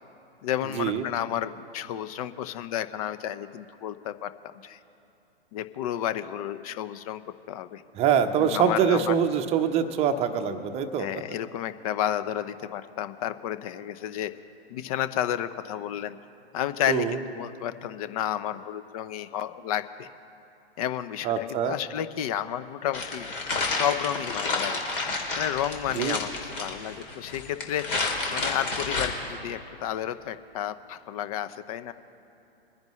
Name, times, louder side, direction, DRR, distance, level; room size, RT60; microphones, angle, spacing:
voice 1, 0.4-4.8 5.5-7.2 7.5-7.8 8.4-9.1 11.0-14.3 14.7-16.2 16.5-20.1 20.8-23.5 23.8-24.8 25.3-26.3 26.6-31.9, left 11 dB, 35° left, 13 dB, 0.6 m, -31 dB
voice 2, 7.9-11.1 16.9-17.2 21.2-21.8 25.9-26.2, right 7 dB, 20° right, 7 dB, 0.8 m, -24 dB
sound 1, 22.9-29.1, left 3 dB, 55° left, 2.9 m, -30 dB
23.5 x 10.5 x 3.1 m, 2.8 s
figure-of-eight pair, 120°, 32 cm